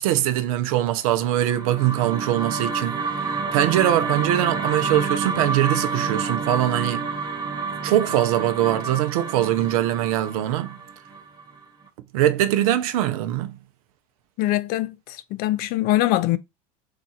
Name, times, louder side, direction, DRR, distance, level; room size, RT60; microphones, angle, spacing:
voice 1, 0.0-7.1 7.8-10.8 12.1-13.6, right 13 dB, 80° right, 0.6 m, -22 dB
sound 1, 1.3-11.6, right 4 dB, 20° right, 0.8 m, -28 dB
voice 2, 14.4-16.4, left 15 dB, 55° left, 0.4 m, -23 dB
2.7 x 2.4 x 4.1 m
supercardioid pair, 90°, 18 cm